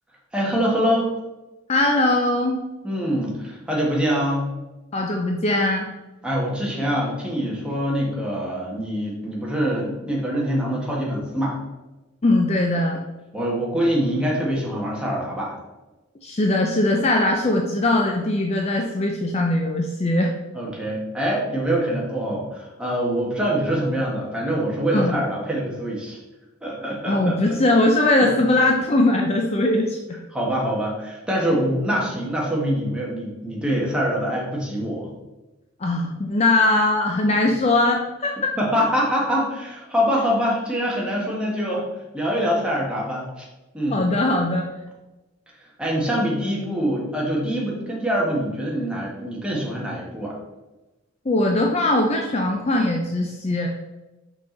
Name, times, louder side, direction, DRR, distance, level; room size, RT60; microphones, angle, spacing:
voice 1, 0.3-1.1 2.8-4.5 6.2-11.6 13.3-15.6 20.5-26.2 26.6-27.6 30.3-35.1 38.6-41.9 42.1-43.5 43.7-44.0 45.8-50.4, equal, 5° right, -4 dB, 1.5 m, -24 dB
voice 2, 1.7-2.6 4.9-5.9 12.2-13.0 16.2-20.3 24.9-25.1 27.1-30.2 35.8-38.5 43.9-44.7 51.3-53.7, left 2 dB, 30° left, 2 dB, 0.5 m, -20 dB
5.8 x 5.0 x 3.8 m, 1.1 s
head